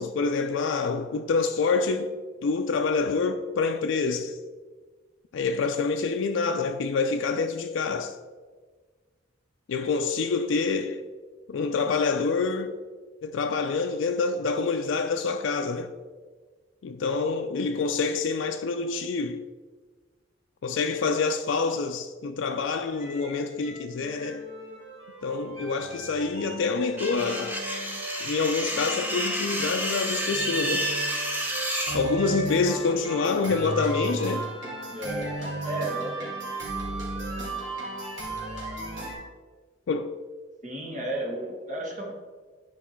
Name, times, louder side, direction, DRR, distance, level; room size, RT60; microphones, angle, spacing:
voice 1, 0.0-2.2 2.4-4.4 5.3-8.2 9.7-11.0 11.5-12.8 13.2-15.9 16.8-19.5 20.6-24.5 25.2-27.6 28.2-30.9 31.9-34.5 39.9-40.2, left 4 dB, 80° left, 0.4 m, -27 dB
sound 1, 22.9-39.1, right 2 dB, 85° right, 2.5 m, -35 dB
sound 2, 27.0-32.0, right 1 dB, 10° right, 0.9 m, -30 dB
voice 2, 34.9-36.5 40.6-42.1, right 1 dB, 40° right, 1.5 m, -34 dB
9.4 x 4.6 x 4.4 m
head